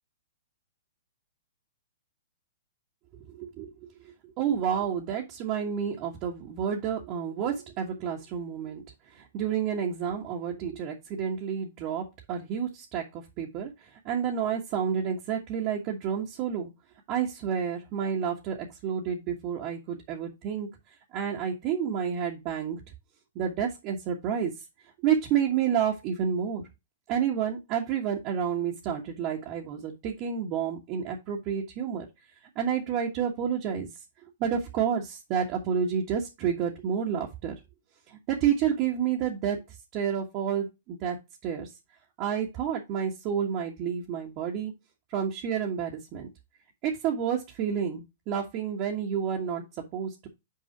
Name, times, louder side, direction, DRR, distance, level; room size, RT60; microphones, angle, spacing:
voice 1, 3.3-3.7 4.4-8.8 9.1-16.7 17.1-20.7 21.1-22.8 23.3-24.5 25.0-26.6 27.1-32.0 32.5-33.9 34.4-37.5 38.1-39.6 39.9-41.2 41.4-41.7 42.2-44.7 45.1-46.3 46.8-50.3, right 8 dB, 35° right, -3 dB, 1.5 m, -30 dB
5.9 x 4.7 x 5.8 m, 0.24 s
hypercardioid pair, 145°, 0 cm